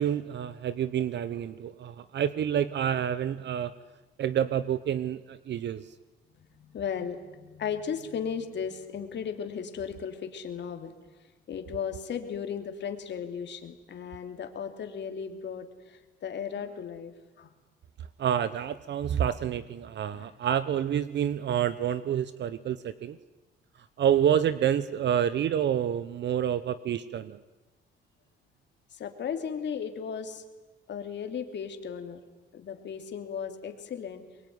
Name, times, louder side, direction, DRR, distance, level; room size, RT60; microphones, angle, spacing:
voice 1, 0.0-3.7 4.2-5.9 18.2-23.2 24.0-27.4, right 9 dB, 60° right, 15 dB, 0.9 m, -28 dB
voice 2, 6.5-10.9 11.5-17.1 17.4-17.5 20.1-20.3 28.9-30.4 30.9-32.2 32.5-34.2, left 7 dB, 65° left, 6 dB, 3.0 m, -36 dB
23.5 x 22.0 x 9.6 m, 1.2 s
cardioid pair, 90°, 20 cm